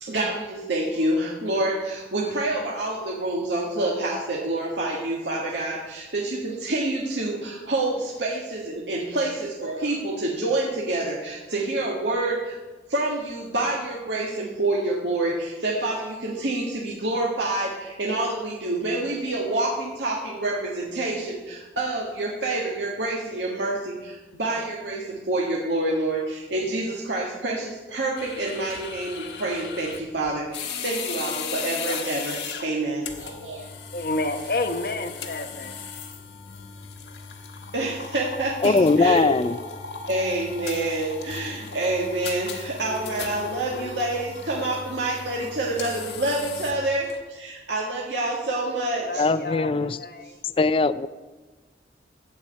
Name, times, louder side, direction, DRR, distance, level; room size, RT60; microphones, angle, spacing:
voice 1, 0.0-12.6 12.9-33.7 37.7-39.3 40.1-49.3, right 2 dB, 85° right, -3 dB, 1.7 m, -27 dB
sound 1, 28.2-47.2, left 5 dB, 90° left, 1.3 m, -37 dB
voice 2, 33.9-35.8 49.0-50.4, left 2 dB, 55° left, 7 dB, 1.0 m, -30 dB
voice 3, 38.6-39.6 49.2-50.0 50.4-51.1, left 3 dB, 30° left, 14 dB, 0.3 m, -20 dB
14.5 x 4.9 x 8.5 m, 1.2 s
head